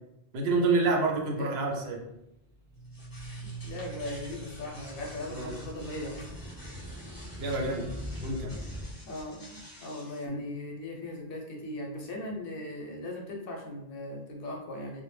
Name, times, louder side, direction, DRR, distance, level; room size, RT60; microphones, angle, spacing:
voice 1, 0.3-2.1 5.3-5.5 7.4-7.8 8.2-8.5 10.3-10.4, right 3 dB, 80° right, 0 dB, 0.8 m, -28 dB
sound 1, 2.3-8.9, left 1 dB, 25° right, 0.7 m, -43 dB
sound 2, 2.7-10.2, right 2 dB, 25° left, 0.5 m, -46 dB
voice 2, 3.4-6.4 9.1-15.0, left 1 dB, 70° left, 0 dB, 0.7 m, -39 dB
2.1 x 2.1 x 3.0 m, 0.86 s
omnidirectional pair, 1.0 m